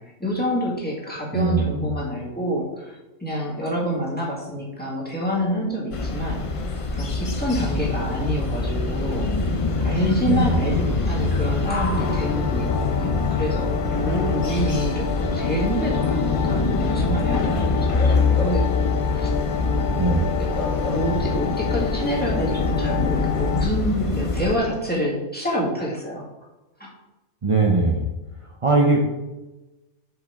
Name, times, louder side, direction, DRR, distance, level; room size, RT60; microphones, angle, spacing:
voice 1, 0.0-6.4 6.9-9.5 9.8-19.3 19.6-20.2 20.8-26.3 26.8-26.9, equal, 5° left, -5 dB, 1.7 m, -27 dB
voice 2, 1.3-1.9 10.3-10.8 20.0-20.4 27.4-28.1 28.6-29.0, right 2 dB, 45° right, -1 dB, 0.4 m, -20 dB
sound 1, 5.9-24.6, left 3 dB, 60° left, 0.3 m, -24 dB
sound 2, 11.9-23.7, left 10 dB, 80° left, 1.0 m, -29 dB
Bark / Livestock farm animals working animals, 17.9-18.8 19.2-19.4 20.5-21.3 21.7-21.8, equal, 25° left, 1.0 m, -33 dB
7.3 x 5.2 x 3.5 m, 1.0 s
omnidirectional pair, 1.5 m